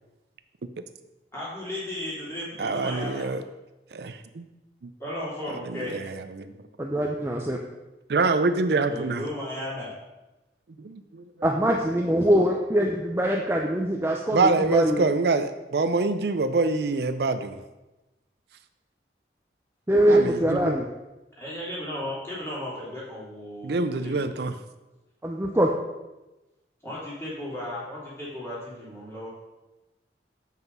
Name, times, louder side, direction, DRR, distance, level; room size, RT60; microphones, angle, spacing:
voice 1, 1.3-3.3 5.0-6.0 8.9-9.9 21.4-24.3 26.8-29.3, left 1 dB, 15° left, -7 dB, 3.1 m, -35 dB
voice 2, 2.6-3.4 3.9-4.5 4.8-4.9 5.6-6.5 8.1-9.3 10.8-11.2 14.3-17.6 20.1-20.8 23.6-24.6, right 3 dB, 65° right, 10 dB, 0.4 m, -25 dB
voice 3, 6.8-7.6 11.4-15.1 19.9-20.9 25.2-25.7, right 1 dB, 15° right, 0 dB, 0.5 m, -23 dB
7.4 x 5.9 x 5.4 m, 1.0 s
head